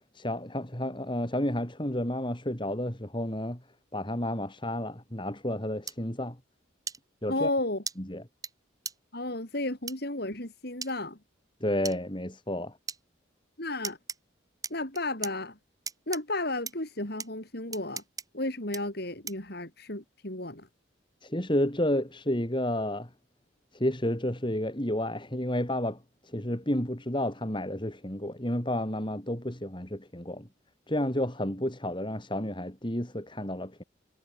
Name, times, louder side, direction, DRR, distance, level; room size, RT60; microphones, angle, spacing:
voice 1, 0.1-3.6 3.9-6.4 7.2-7.5 8.1-8.2 11.6-12.7 21.2-23.1 23.7-26.0 26.2-30.5 30.9-33.8, left 1 dB, 25° left, 3.8 m, -31 dB
sound 1, 5.9-6.0 6.9-7.0 7.9-8.0 8.4-8.5 8.8-8.9 9.9-10.0 10.8-10.9 11.8-12.0 12.9-13.0 13.8-14.2 14.6-15.3 15.9-16.2 16.7-16.8 17.2-17.3 17.7-18.2 18.7-18.8 19.3-19.5, right 5 dB, 20° right, 5.5 m, -36 dB
voice 2, 7.3-7.8 9.1-11.2 13.6-14.0 14.7-15.6 16.1-18.0 18.3-20.7, left 2 dB, 55° left, 4.7 m, -33 dB
head